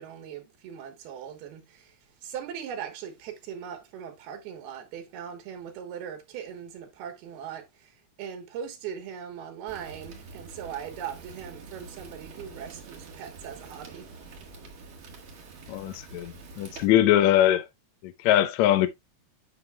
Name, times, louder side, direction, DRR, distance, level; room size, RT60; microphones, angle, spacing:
voice 1, 0.0-14.1 16.6-16.8, right 8 dB, 90° right, 3.3 m, -40 dB
Fire, 9.7-16.9, right 4 dB, 50° right, 1.7 m, -46 dB
voice 2, 15.7-17.6 18.0-18.9, left 12 dB, 85° left, 1.6 m, -22 dB
9.0 x 6.8 x 2.3 m
omnidirectional pair, 4.3 m